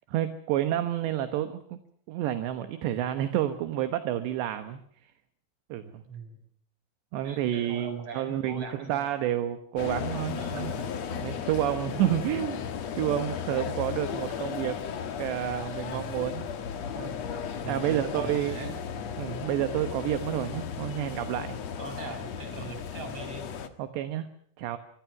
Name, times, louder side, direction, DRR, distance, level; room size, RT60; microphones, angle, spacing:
voice 1, 0.1-1.8 2.1-4.8 5.7-6.0 7.1-10.7 11.1-12.6 13.0-14.8 15.2-16.5 17.0-17.1 17.7-18.8 19.2-21.6 23.8-24.3 24.6-24.8, right 12 dB, 70° right, 10 dB, 3.1 m, -29 dB
voice 2, 6.1-6.4 7.2-9.1 10.4-10.9 12.0-12.2 15.9-16.1 17.6-18.7 21.8-23.5, right 4 dB, 30° right, 6 dB, 6.4 m, -41 dB
sound 1, 9.8-23.7, left 7 dB, 85° left, 1.4 m, -35 dB
26.5 x 23.5 x 6.0 m, 0.64 s
omnidirectional pair, 5.8 m